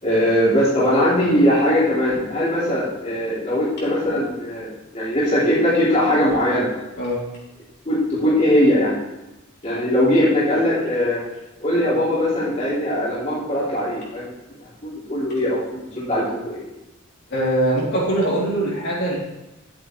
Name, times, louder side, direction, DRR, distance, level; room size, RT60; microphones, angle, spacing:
voice 1, 0.0-4.7 4.9-6.7 7.8-9.0 9.6-11.2 11.6-14.3 14.8-16.6, equal, 35° left, -9 dB, 3.4 m, -20 dB
voice 2, 17.3-19.2, right 1 dB, 50° left, -7 dB, 3.5 m, -22 dB
11.0 x 8.5 x 3.4 m, 1.0 s
head